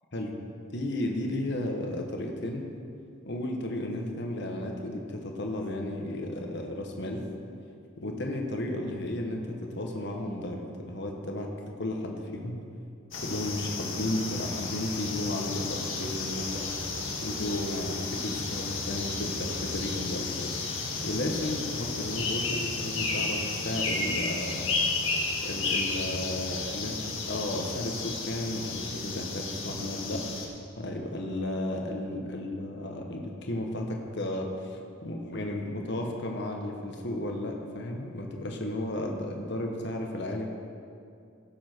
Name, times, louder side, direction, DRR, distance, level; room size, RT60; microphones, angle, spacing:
voice 1, 0.7-2.6 3.3-7.2 8.0-11.5 11.8-12.6 13.2-16.9 17.2-20.5 21.0-24.7 25.4-30.2 30.8-40.6, left 1 dB, 60° left, 2 dB, 1.3 m, -33 dB
sound 1, 13.1-30.5, left 3 dB, 75° left, 1.9 m, -33 dB
17.0 x 7.3 x 4.5 m, 2.4 s
head